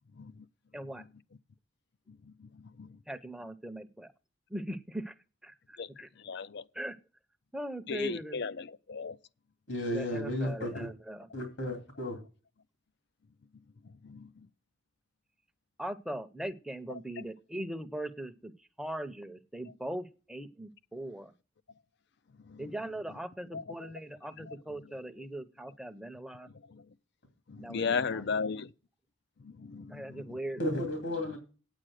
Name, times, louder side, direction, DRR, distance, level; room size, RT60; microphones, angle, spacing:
voice 1, 3.1-4.1 4.5-5.1 5.4-5.5 6.0-6.1 6.8-7.0 7.5-8.4 9.9-11.3 15.8-18.5 18.8-21.3 22.6-26.5 27.6-27.8 29.9-30.6, right 1 dB, 5° right, 0.7 m, -40 dB
voice 2, 6.2-6.6 7.9-9.2 14.0-14.3 16.9-17.0 22.5-22.7 23.5-23.9 24.4-24.6 26.7-26.8 27.5-28.7 29.4-30.4, left 5 dB, 60° left, 0.5 m, -36 dB
voice 3, 9.7-10.9 11.3-12.2 30.6-31.4, left 1 dB, 85° left, 2.9 m, -33 dB
9.0 x 8.4 x 6.4 m
head